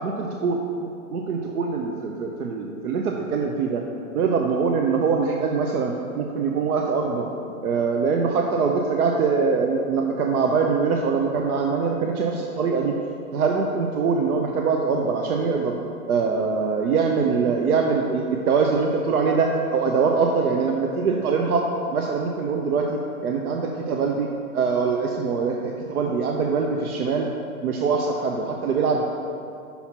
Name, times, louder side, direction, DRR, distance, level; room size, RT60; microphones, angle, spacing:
voice 1, 0.0-3.8 4.1-7.3 7.6-12.9 13.3-15.7 16.1-21.6 21.9-24.3 24.5-27.3 27.6-29.0, right 5 dB, 85° right, 1 dB, 0.7 m, -23 dB
5.6 x 4.3 x 5.9 m, 2.6 s
hypercardioid pair, 145°, 43 cm